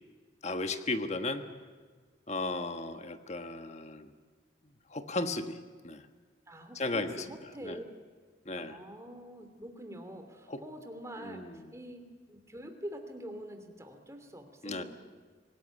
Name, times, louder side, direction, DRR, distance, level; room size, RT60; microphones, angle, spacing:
voice 1, 0.4-1.5 2.3-4.1 4.9-5.6 5.8-6.1 6.8-7.2 7.6-7.8 8.4-8.8 10.5-10.6 11.2-11.6 14.6-14.8, left 2 dB, 40° left, 8 dB, 1.5 m, -35 dB
voice 2, 6.5-7.8 8.6-14.8, equal, 15° right, 6 dB, 2.8 m, -45 dB
26.0 x 18.0 x 9.1 m, 1.5 s
head